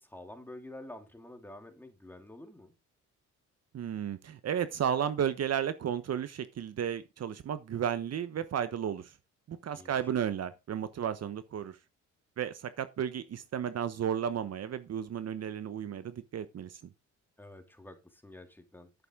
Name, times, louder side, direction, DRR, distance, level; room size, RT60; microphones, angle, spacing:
voice 1, 0.0-2.7 9.7-10.0 17.4-18.9, left 1 dB, 5° left, 2.9 m, -49 dB
voice 2, 3.7-9.1 9.5-11.8 12.4-16.8, right 8 dB, 55° right, 1.1 m, -33 dB
11.0 x 8.6 x 3.8 m
cardioid pair, 90°, 30 cm